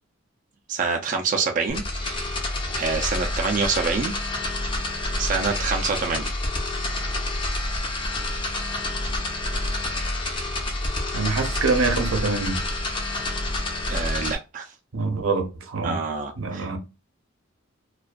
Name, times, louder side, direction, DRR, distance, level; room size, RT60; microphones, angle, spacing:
voice 1, 0.7-1.8 2.4-4.1 5.1-6.3 13.9-14.7 15.8-16.7, right 5 dB, 40° right, 0.4 m, -26 dB
sound 1, 1.7-14.4, left 2 dB, 25° left, 0.5 m, -28 dB
voice 2, 11.1-12.6 14.9-16.0 16.4-16.8, right 4 dB, 80° right, 0.6 m, -25 dB
2.3 x 2.2 x 2.4 m
head